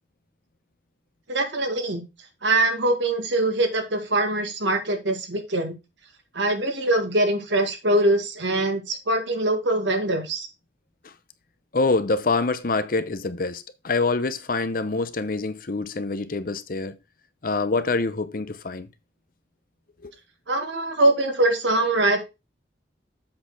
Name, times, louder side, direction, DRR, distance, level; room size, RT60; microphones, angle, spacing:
voice 1, 1.3-2.0 2.4-5.7 6.3-10.5 20.5-22.2, right 2 dB, 85° right, 2.0 m, -23 dB
voice 2, 11.7-17.0 17.4-18.9 20.0-20.1, left 3 dB, 50° left, 0.8 m, -25 dB
7.6 x 4.3 x 5.9 m
head